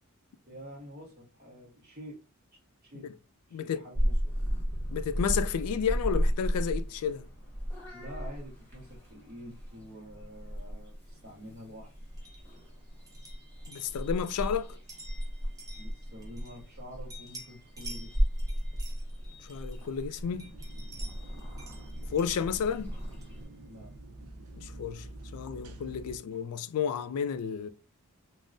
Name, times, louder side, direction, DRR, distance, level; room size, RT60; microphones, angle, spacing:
voice 1, 0.5-2.2 2.8-3.1 3.5-4.4 7.9-11.9 15.7-18.2 23.7-23.9, equal, 45° right, 0.8 m, -47 dB
voice 2, 3.5-3.8 4.9-7.2 13.7-14.7 19.4-20.5 22.1-22.9 24.6-25.1 25.3-27.7, left 7 dB, 75° left, 0.3 m, -31 dB
Purr / Meow, 3.9-23.4, equal, 10° left, 1.0 m, -35 dB
sound 1, 12.2-16.8 17.1-20.0 20.4-23.4, right 1 dB, 15° right, 0.6 m, -51 dB
sound 2, 20.2-26.2, right 1 dB, 80° right, 0.5 m, -47 dB
3.6 x 2.0 x 2.5 m
head